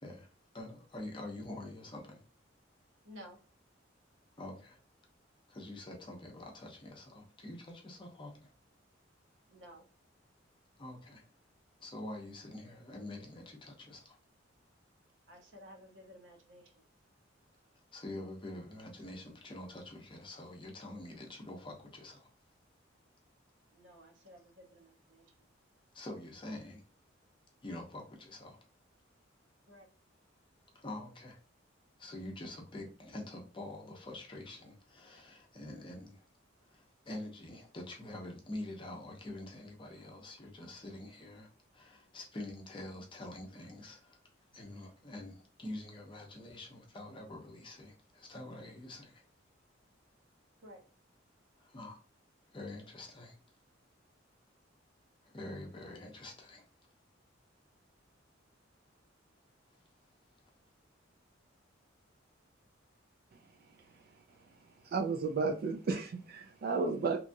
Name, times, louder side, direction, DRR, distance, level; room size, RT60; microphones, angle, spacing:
voice 1, 0.0-2.2 4.4-4.8 5.5-8.5 10.8-11.2 11.8-14.2 17.9-22.3 25.9-26.8 27.6-28.6 30.7-31.4 32.0-36.2 36.7-41.5 41.7-44.2 44.5-49.2 51.6-52.0 52.5-53.3 55.2-56.6, left 1 dB, 25° left, 0.6 m, -46 dB
voice 2, 3.0-3.4 9.5-9.9 15.3-16.7 23.7-25.5 29.7-29.9 50.6-50.8, equal, 70° right, 0.8 m, -54 dB
voice 3, 64.8-67.2, right 4 dB, 50° right, 0.3 m, -33 dB
2.9 x 2.3 x 2.6 m
head